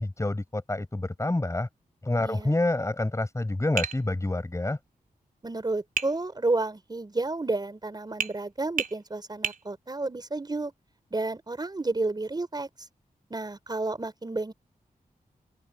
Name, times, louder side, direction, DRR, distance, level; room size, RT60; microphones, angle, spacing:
voice 1, 0.0-1.7 2.0-4.8, left 2 dB, 20° left, 6.5 m, -28 dB
voice 2, 2.2-2.5 5.4-10.7 11.1-12.7 13.3-14.5, right 2 dB, 30° right, 4.8 m, -31 dB
Tap, 3.8-4.0 6.0-6.1 8.2-8.4 8.8-9.0 9.4-9.6, right 5 dB, 70° right, 4.3 m, -29 dB
open air
wide cardioid pair, 125°, 15 cm